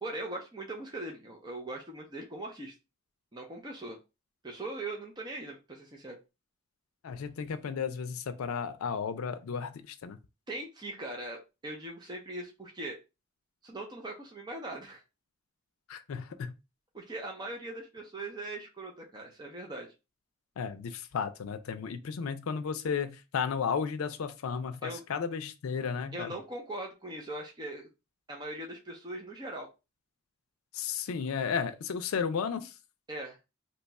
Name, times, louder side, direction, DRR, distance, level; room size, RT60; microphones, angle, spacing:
voice 1, 0.0-2.7 3.3-4.0 4.4-6.2 10.5-13.0 13.6-15.0 16.9-19.9 22.2-22.3 24.8-25.0 26.1-27.9 28.3-29.7 33.1-33.4, right 2 dB, 20° right, 0.6 m, -40 dB
voice 2, 7.0-10.2 15.9-16.5 20.6-26.3 30.7-32.7, left 6 dB, 90° left, 0.4 m, -34 dB
2.9 x 2.3 x 4.0 m
head